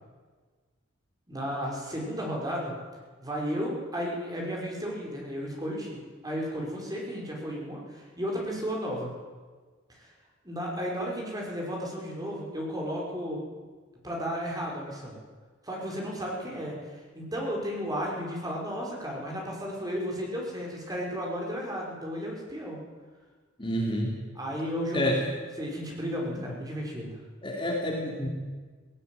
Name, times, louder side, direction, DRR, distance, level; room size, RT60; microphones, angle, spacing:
voice 1, 1.3-2.7 3.2-6.0 6.2-9.1 10.0-10.1 10.4-13.4 14.0-15.2 15.6-22.8 24.4-25.1 25.6-27.2, equal, 20° right, -2 dB, 5.3 m, -33 dB
voice 2, 23.6-24.1 24.9-25.2 27.4-28.3, equal, 25° left, -1 dB, 3.1 m, -28 dB
18.0 x 17.5 x 9.3 m, 1.4 s
head